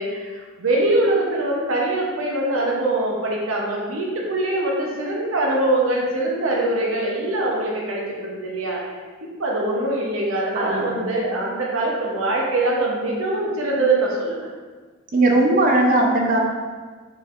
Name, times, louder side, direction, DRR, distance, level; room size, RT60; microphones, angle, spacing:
voice 1, 0.0-8.8 9.4-14.5, right 2 dB, 85° right, -2 dB, 0.8 m, -23 dB
voice 2, 10.5-11.0 15.1-16.4, right 2 dB, 40° right, 1 dB, 0.6 m, -18 dB
4.6 x 3.9 x 2.5 m, 1.4 s
head